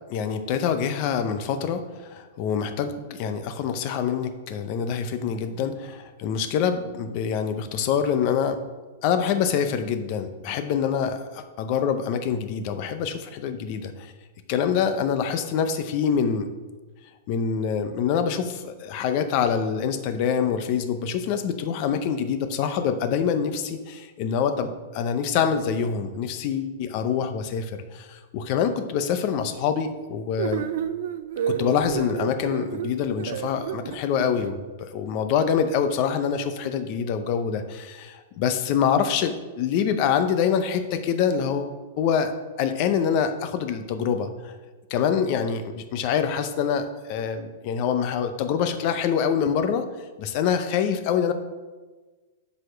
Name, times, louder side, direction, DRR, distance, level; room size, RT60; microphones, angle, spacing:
voice 1, 0.1-8.6 9.0-14.1 14.5-16.5 17.3-30.7 31.5-42.3 42.6-44.5 44.9-49.9 50.2-51.3, left 7 dB, 35° left, 9 dB, 0.6 m, -25 dB
sound 1, 30.4-34.5, right 9 dB, 55° right, 0.4 m, -30 dB
8.0 x 4.2 x 5.7 m, 1.3 s
supercardioid pair, 175°, 0 cm